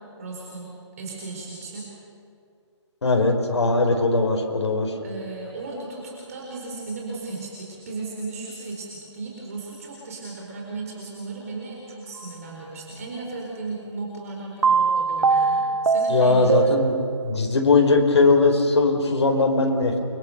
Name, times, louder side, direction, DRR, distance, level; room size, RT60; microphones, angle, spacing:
voice 1, 0.2-0.7 1.0-1.9 5.0-16.6, right 3 dB, 30° right, -2 dB, 4.6 m, -35 dB
voice 2, 3.0-4.9 16.1-16.9 17.2-20.0, left 3 dB, 65° left, 2 dB, 5.0 m, -19 dB
sound 1, 14.6-17.5, right 5 dB, 75° right, 0.8 m, -22 dB
29.5 x 25.0 x 6.8 m, 2.4 s
hypercardioid pair, 175°, 15 cm